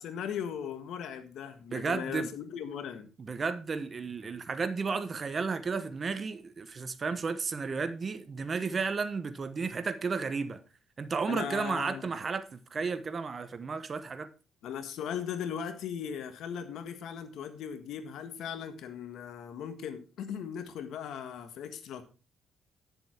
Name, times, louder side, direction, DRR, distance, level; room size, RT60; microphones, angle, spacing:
voice 1, 0.0-3.1 11.3-12.1 14.6-22.0, left 8 dB, 80° left, 1.4 m, -38 dB
voice 2, 1.7-2.3 3.2-10.6 11.0-14.3, right 4 dB, 40° right, 1.1 m, -33 dB
10.5 x 7.2 x 4.4 m
cardioid pair, 90°, 0 cm